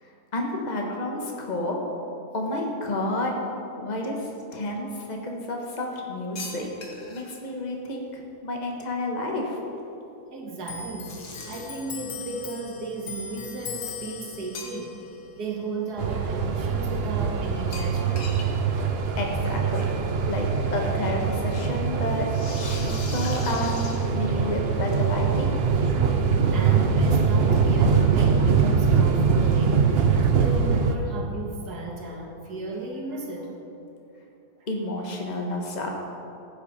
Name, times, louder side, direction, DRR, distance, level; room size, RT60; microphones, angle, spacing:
voice 1, 0.0-1.8 2.3-3.4 3.8-6.7 7.1-9.6 19.2-19.9 20.2-22.3 22.5-25.5 34.7-35.9, left 1 dB, 30° left, 0 dB, 1.5 m, -30 dB
sound 1, 6.4-7.3 11.0-11.9 14.5-15.1 15.5-15.6 17.7-18.5 18.8-18.9 19.2-19.3 20.4-20.5 22.2-24.6, left 3 dB, 85° left, 2.0 m, -40 dB
voice 2, 10.3-14.9 15.4-18.4 26.5-33.5 34.6-34.7, right 3 dB, 85° right, 0 dB, 2.1 m, -35 dB
Clock, 10.6-17.7 17.9-19.3 19.5-20.4, left 6 dB, 55° left, 1.1 m, -41 dB
sound 2, 16.0-30.9, right 5 dB, 50° right, 0.8 m, -23 dB
15.0 x 9.1 x 4.2 m, 2.8 s
omnidirectional pair, 1.7 m